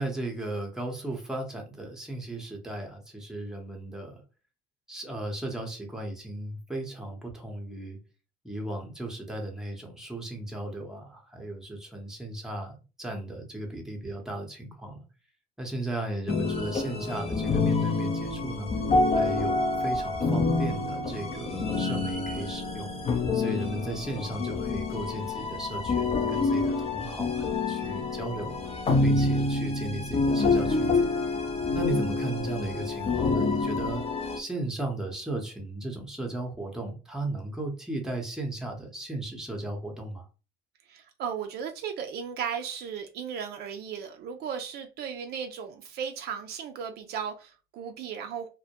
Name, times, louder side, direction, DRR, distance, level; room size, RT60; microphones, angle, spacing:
voice 1, 0.0-4.2 4.9-8.0 8.4-15.0 15.6-18.7 19.1-22.9 23.3-28.6 29.0-31.1 31.7-34.0 34.4-40.3, right 2 dB, 5° right, 0.7 m, -35 dB
sound 1, 16.3-34.4, left 3 dB, 30° left, 0.5 m, -27 dB
voice 2, 40.9-48.5, right 7 dB, 60° right, 0.4 m, -36 dB
2.2 x 2.1 x 2.8 m
cardioid pair, 110°, 19 cm